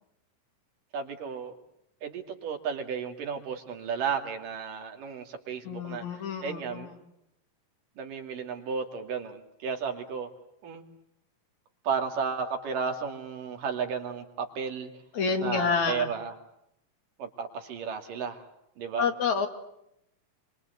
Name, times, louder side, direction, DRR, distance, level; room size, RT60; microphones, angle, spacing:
voice 1, 0.9-1.5 2.0-6.9 8.0-10.3 10.6-10.8 11.8-14.9 15.4-16.4 17.2-18.4 18.8-19.1, right 6 dB, 75° right, 5 dB, 4.2 m, -33 dB
voice 2, 5.7-6.9 15.1-16.1 19.0-19.5, left 5 dB, 60° left, 7 dB, 3.5 m, -28 dB
27.5 x 25.0 x 8.2 m, 0.80 s
omnidirectional pair, 3.9 m